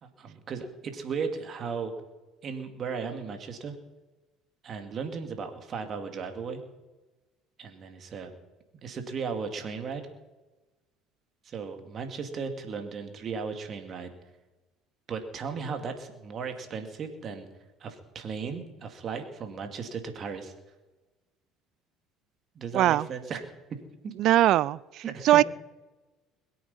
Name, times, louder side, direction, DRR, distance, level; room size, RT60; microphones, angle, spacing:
voice 1, 0.0-1.9 2.4-3.8 4.6-6.6 7.6-8.3 8.8-10.0 11.4-14.1 15.1-17.5 17.8-20.5 22.5-23.4 24.0-24.1 25.0-25.4, right 5 dB, 45° right, 6 dB, 2.6 m, -36 dB
voice 2, 22.7-23.1 24.2-25.4, right 14 dB, 60° right, 23 dB, 0.4 m, -21 dB
22.0 x 8.7 x 5.6 m, 1.2 s
hypercardioid pair, 75°, 0 cm